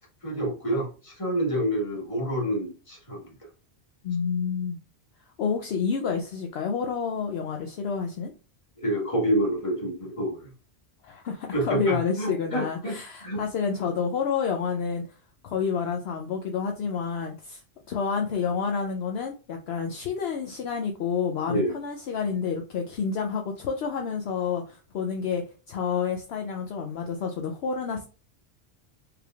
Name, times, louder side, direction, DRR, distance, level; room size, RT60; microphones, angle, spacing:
voice 1, 0.2-3.3 8.8-10.5 11.5-12.9 13.2-13.4 21.5-21.7, right 1 dB, 30° left, -2 dB, 1.6 m, -28 dB
voice 2, 4.0-4.8 5.4-8.3 11.0-15.0 15.4-17.6 17.9-28.0, left 6 dB, 70° left, 3 dB, 0.8 m, -29 dB
4.8 x 3.3 x 2.3 m, 0.34 s
omnidirectional pair, 1.2 m